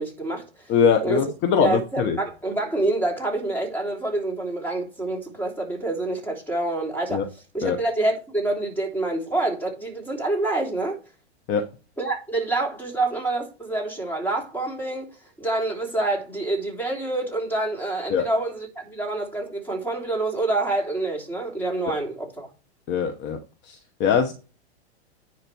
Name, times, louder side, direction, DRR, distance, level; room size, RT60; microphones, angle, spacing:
voice 1, 0.0-0.7 1.0-1.3 1.6-7.2 7.5-11.0 12.0-15.1 15.4-22.5, right 2 dB, 5° left, 3.2 m, -27 dB
voice 2, 0.7-2.2 7.1-7.2 7.6-7.8 11.5-11.6 18.1-18.2 22.9-23.4 23.7-24.3, left 7 dB, 35° left, 1.2 m, -22 dB
10.5 x 4.9 x 4.6 m
hypercardioid pair, 130°, 34 cm